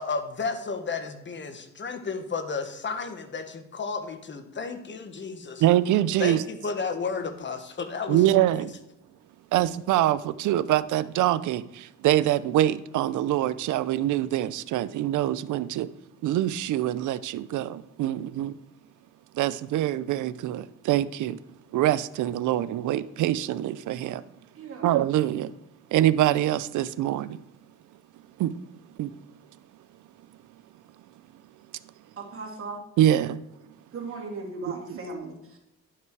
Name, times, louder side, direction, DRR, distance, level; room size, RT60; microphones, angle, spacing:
voice 1, 0.0-5.6 6.2-8.2, left 4 dB, 40° left, 1.3 m, -32 dB
voice 2, 5.6-6.4 8.1-8.7 9.5-15.9 16.2-18.6 19.3-21.4 21.7-24.2 24.8-25.5 25.9-27.4 28.4-28.5 29.0-29.1 33.0-33.4 34.9-35.0, right 13 dB, 75° right, 0.6 m, -24 dB
voice 3, 24.5-24.9 32.2-32.8 33.9-35.6, right 3 dB, 45° right, 2.8 m, -37 dB
11.0 x 5.9 x 4.7 m
cardioid pair, 90°, 30 cm